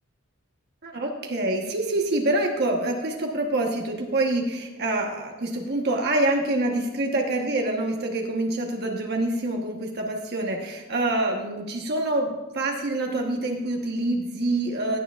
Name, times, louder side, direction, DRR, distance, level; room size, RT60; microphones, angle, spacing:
voice 1, 0.8-15.0, right 2 dB, 50° right, 1 dB, 1.2 m, -26 dB
16.0 x 9.8 x 2.5 m, 1.1 s
head